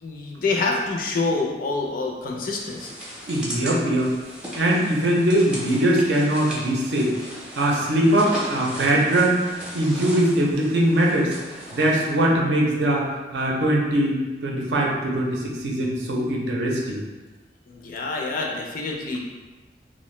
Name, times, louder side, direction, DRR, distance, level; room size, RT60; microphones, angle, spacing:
voice 1, 0.0-3.0 17.7-19.2, left 3 dB, 50° left, 0 dB, 0.4 m, -27 dB
sound 1, 2.5-12.1, equal, 5° right, 0.6 m, -37 dB
voice 2, 3.3-4.1 4.6-7.1 7.6-9.4 9.7-17.0, right 1 dB, 70° right, -2 dB, 0.5 m, -21 dB
2.5 x 2.0 x 3.1 m, 1.2 s
head